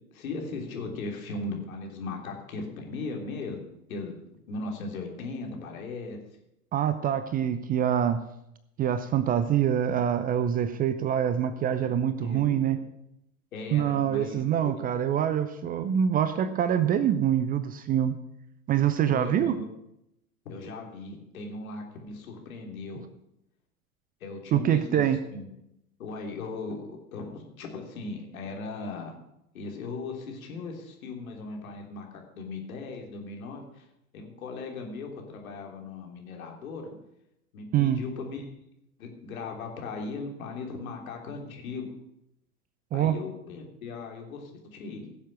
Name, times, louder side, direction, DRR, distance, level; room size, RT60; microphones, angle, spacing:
voice 1, 0.1-3.6 3.9-4.1 4.5-6.2 12.2-12.6 13.5-14.7 19.1-19.7 20.4-23.0 24.2-25.5 26.0-29.1 29.5-33.9 34.1-36.9 37.5-38.4 39.0-42.0 42.9-45.1, left 3 dB, 65° left, 2 dB, 3.3 m, -38 dB
voice 2, 6.7-8.2 8.8-12.8 13.7-18.2 18.7-19.5 24.5-25.2 37.7-38.0 42.9-43.2, right 9 dB, 20° right, 13 dB, 0.5 m, -25 dB
16.5 x 7.3 x 6.1 m, 0.82 s
figure-of-eight pair, 95°, 44 cm